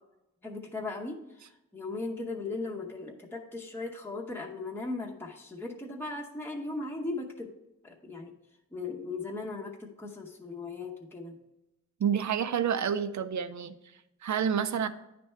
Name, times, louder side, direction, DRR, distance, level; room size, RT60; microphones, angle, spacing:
voice 1, 0.4-7.5 7.8-8.3 8.7-11.4, left 3 dB, 5° left, 0 dB, 0.8 m, -38 dB
voice 2, 12.0-13.7 14.2-14.9, right 8 dB, 65° right, 11 dB, 0.5 m, -28 dB
9.6 x 3.4 x 4.3 m, 0.93 s
wide cardioid pair, 95°, 31 cm